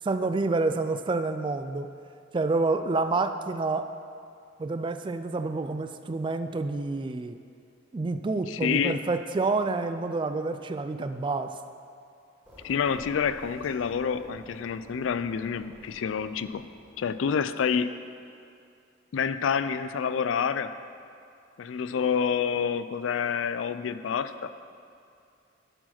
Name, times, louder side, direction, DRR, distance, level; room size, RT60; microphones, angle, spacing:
voice 1, 0.0-1.9 2.3-3.9 4.6-7.4 7.9-11.6, right 3 dB, 25° right, 9 dB, 0.3 m, -28 dB
voice 2, 8.5-9.0 12.6-16.7 17.0-17.9 19.1-20.7 21.6-24.5, left 6 dB, 80° left, 13 dB, 0.4 m, -28 dB
sound 1, 12.4-17.7, equal, 10° right, 2.2 m, -51 dB
11.5 x 4.7 x 5.9 m, 2.4 s
head